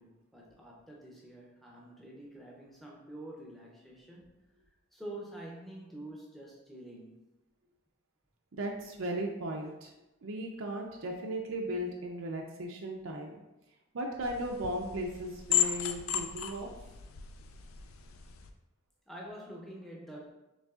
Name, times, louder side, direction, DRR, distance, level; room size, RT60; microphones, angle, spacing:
voice 1, 0.0-4.3 4.9-7.3 19.1-20.3, right 1 dB, ahead, -3 dB, 0.6 m, -47 dB
voice 2, 8.5-9.9 10.2-13.4 13.9-16.7, right 1 dB, 75° right, 1 dB, 0.5 m, -36 dB
sound 1, 14.2-18.5, left 9 dB, 90° left, 0.4 m, -35 dB
6.2 x 3.2 x 2.4 m, 0.98 s
head